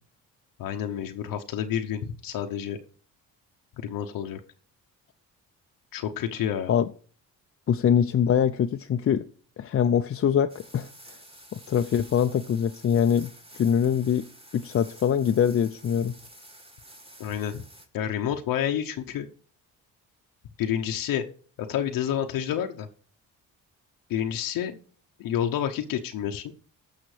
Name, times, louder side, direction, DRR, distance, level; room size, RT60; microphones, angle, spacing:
voice 1, 0.6-2.8 3.8-4.4 5.9-6.7 17.2-17.6 17.9-19.3 20.6-21.3 21.6-22.9 24.1-24.8 25.2-26.4, left 9 dB, 80° left, 4 dB, 0.8 m, -29 dB
voice 2, 7.7-9.3 9.6-11.2 11.5-14.2 14.5-16.1, left 8 dB, 40° left, 7 dB, 0.5 m, -23 dB
sound 1, 10.5-17.9, right 1 dB, 15° right, 2.2 m, -50 dB
15.0 x 5.7 x 3.2 m, 0.43 s
cardioid pair, 70°, 34 cm